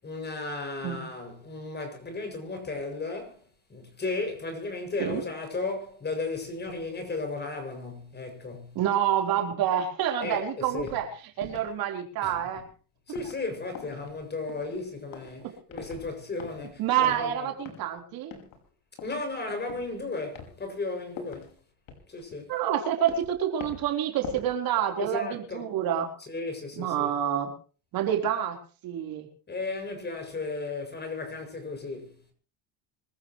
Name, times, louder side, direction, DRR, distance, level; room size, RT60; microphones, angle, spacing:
voice 1, 0.0-8.8 10.2-10.9 12.2-12.4 13.1-17.5 19.0-21.6 22.1-22.5 25.0-25.7 26.2-27.1 29.5-32.3, left 3 dB, 25° left, 7.1 m, -35 dB
voice 2, 8.7-11.1 11.4-12.6 15.4-15.5 16.8-18.3 22.5-26.1 26.8-27.5 27.9-28.6 28.8-29.3, right 10 dB, 55° right, 4.2 m, -27 dB
sound 1, 10.7-11.0 11.4-11.7 12.4-12.7 13.1-13.5 13.7-14.2 14.5-14.9 15.1-15.4 15.7-16.1 16.4-16.7 17.0-17.3 17.7-18.0 18.3-18.7 19.0-19.2 19.7-20.0 20.3-20.6 21.2-21.5 21.9-22.8 23.1-23.4 23.6-23.9 24.2-24.6 24.9-25.0, left 7 dB, 55° left, 5.6 m, -44 dB
25.5 x 14.5 x 3.2 m
supercardioid pair, 115°, 41 cm